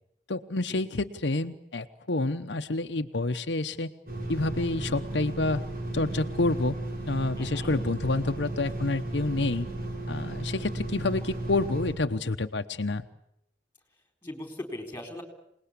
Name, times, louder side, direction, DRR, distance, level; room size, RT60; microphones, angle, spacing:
voice 1, 0.3-3.9 4.3-5.6 5.9-6.8 7.0-9.7 10.1-13.0, left 2 dB, 75° left, 6 dB, 1.0 m, -28 dB
sound 1, 4.1-11.9, right 1 dB, 50° right, 7.3 m, -34 dB
voice 2, 7.4-7.8 14.2-15.2, left 1 dB, 10° left, 5 dB, 4.3 m, -39 dB
27.0 x 19.5 x 8.5 m, 0.76 s
head